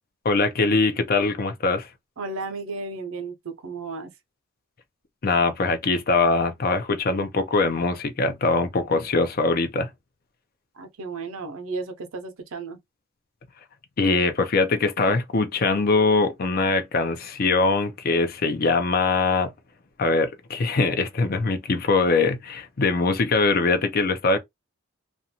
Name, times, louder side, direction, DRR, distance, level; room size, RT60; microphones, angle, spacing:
voice 1, 0.2-1.9 5.2-9.9 14.0-19.5 20.0-24.4, left 3 dB, 45° left, 0.5 m, -22 dB
voice 2, 2.2-4.1 10.8-12.8, right 3 dB, 80° right, 0.6 m, -34 dB
2.5 x 2.2 x 2.8 m
head